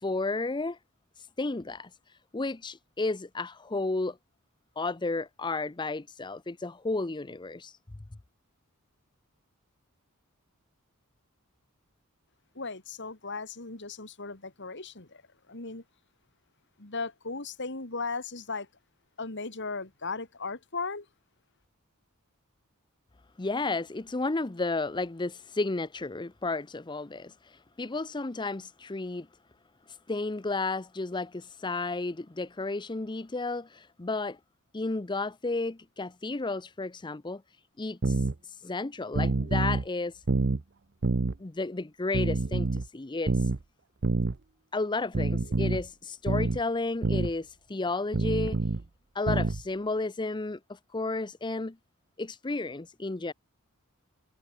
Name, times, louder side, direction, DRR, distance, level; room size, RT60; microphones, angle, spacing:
voice 1, 0.0-0.8 1.2-4.2 4.8-7.8 23.4-29.3 29.9-34.4 34.7-37.4 37.8-40.2 41.4-43.5 44.7-48.6 49.1-51.7 52.2-53.3, left 3 dB, 20° left, 0.6 m, -32 dB
voice 2, 12.5-15.2 15.5-15.8 16.8-18.7 19.2-21.1, left 4 dB, 55° left, 2.7 m, -36 dB
sound 1, 38.0-38.3 39.1-39.9 40.3-40.6 41.0-41.4 42.1-42.9 43.3-43.6 44.0-44.4 45.1-45.8 46.3-46.6 47.0-47.3 48.1-48.8 49.3-49.6, right 3 dB, 50° right, 0.7 m, -27 dB
head